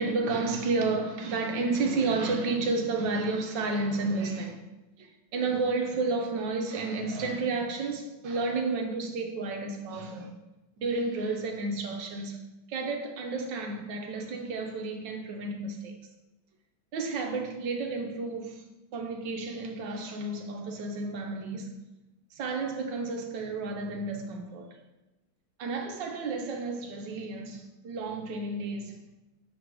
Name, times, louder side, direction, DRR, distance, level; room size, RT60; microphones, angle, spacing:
voice 1, 0.0-4.6 5.0-10.3 10.8-12.4 12.7-15.9 16.9-18.6 18.9-21.7 22.3-24.7 25.6-28.9, right 3 dB, 65° right, 1.4 m, -31 dB
6.5 x 4.0 x 4.7 m
omnidirectional pair, 2.2 m